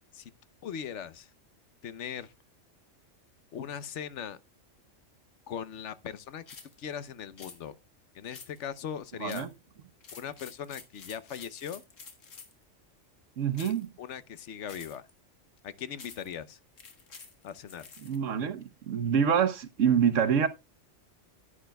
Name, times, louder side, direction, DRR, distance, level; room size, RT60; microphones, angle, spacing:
voice 1, 0.6-1.3 1.8-2.3 3.5-4.4 5.5-6.4 6.8-7.7 8.1-9.5 10.1-11.8 13.6-15.1 15.6-16.6 17.4-17.9, left 8 dB, 70° left, 1.0 m, -39 dB
sound 1, 6.5-6.8 7.4-7.6 8.3-8.7 9.3-9.6 10.0-12.6 13.5-13.9 14.7-15.1 16.0-16.3 16.8-18.2, left 5 dB, 85° left, 1.9 m, -49 dB
voice 2, 13.4-13.9 18.0-20.5, right 7 dB, 85° right, 1.3 m, -26 dB
11.0 x 9.9 x 2.2 m
omnidirectional pair, 1.3 m